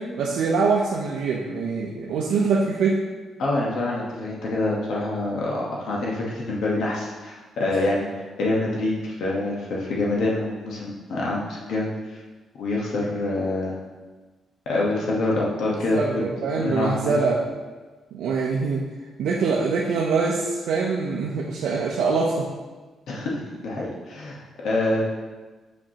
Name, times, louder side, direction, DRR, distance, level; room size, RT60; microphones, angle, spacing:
voice 1, 0.0-3.0 15.9-17.5 18.1-18.8 19.2-22.5, right 4 dB, 85° right, -2 dB, 0.6 m, -24 dB
voice 2, 3.4-8.1 8.4-11.9 12.6-13.7 14.7-16.2 16.6-17.1 23.1-25.1, left 2 dB, 70° left, -3 dB, 1.1 m, -26 dB
7.5 x 5.1 x 2.8 m, 1.3 s
cardioid pair, 155°, 0 cm